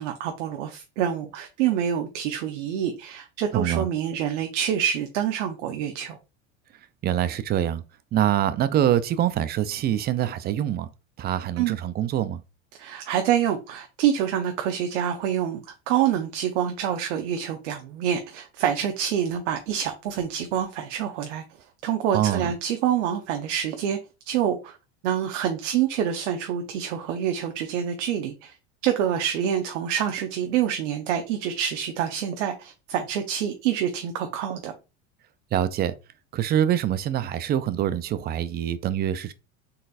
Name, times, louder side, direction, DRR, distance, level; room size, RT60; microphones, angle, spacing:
voice 1, 0.0-6.2 11.6-11.7 12.8-21.4 21.8-24.0 24.3-24.8 25.0-28.5 28.8-34.7, right 9 dB, 85° right, 0.7 m, -26 dB
voice 2, 3.5-3.9 7.0-7.8 8.1-10.9 11.2-12.4 22.1-22.5 35.5-35.9 36.3-39.3, right 11 dB, 30° right, 0.4 m, -24 dB
4.0 x 3.9 x 2.4 m
supercardioid pair, 115°, 35 cm